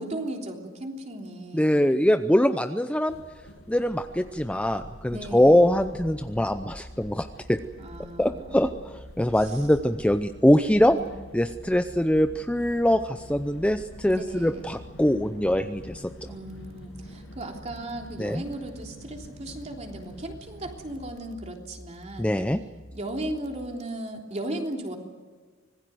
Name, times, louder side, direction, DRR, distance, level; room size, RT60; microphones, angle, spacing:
voice 1, 0.0-1.8 5.1-5.7 7.8-8.8 9.4-9.7 10.9-11.1 14.1-14.7 16.2-22.3 22.9-25.0, right 1 dB, 35° right, 2 dB, 3.4 m, -36 dB
voice 2, 1.5-3.2 3.7-7.6 8.2-11.0 11.3-16.1 18.2-18.4 22.2-22.6, left 1 dB, 5° left, 8 dB, 0.6 m, -23 dB
sound 1, 3.1-21.1, equal, 75° left, 6.9 m, -48 dB
sound 2, 5.6-23.7, equal, 15° right, 5.1 m, -48 dB
25.5 x 20.0 x 7.9 m, 1.5 s
head